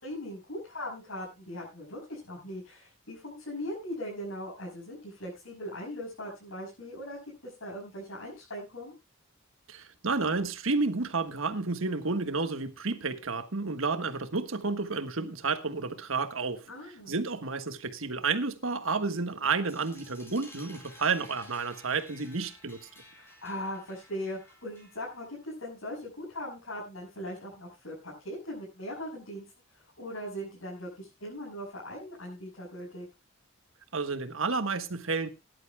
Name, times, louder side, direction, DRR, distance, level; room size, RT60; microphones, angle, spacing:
voice 1, 0.0-8.9 16.7-17.2 23.2-29.4 30.0-33.0, equal, 80° left, 6.6 m, -40 dB
voice 2, 9.7-16.6 17.1-22.8 33.9-35.3, right 4 dB, 80° right, 1.4 m, -31 dB
sound 1, 19.7-25.2, left 1 dB, 10° left, 4.0 m, -53 dB
19.5 x 11.0 x 2.2 m
head